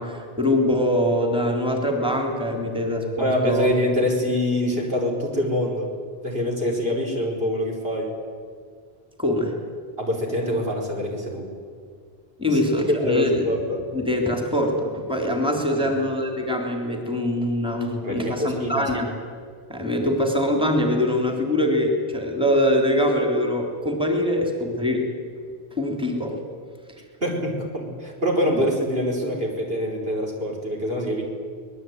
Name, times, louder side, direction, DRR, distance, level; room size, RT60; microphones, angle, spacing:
voice 1, 0.0-3.7 9.2-9.5 12.4-13.5 13.9-19.1 19.7-25.0 25.8-26.4 28.5-28.6, left 1 dB, 5° right, 2 dB, 3.5 m, -23 dB
voice 2, 3.2-5.9 6.2-8.1 10.0-11.5 12.5-12.6 13.0-13.8 15.8-15.9 18.0-18.9 27.2-31.2, equal, 70° right, 0 dB, 5.5 m, -25 dB
25.5 x 20.0 x 9.4 m, 2.1 s
omnidirectional pair, 1.1 m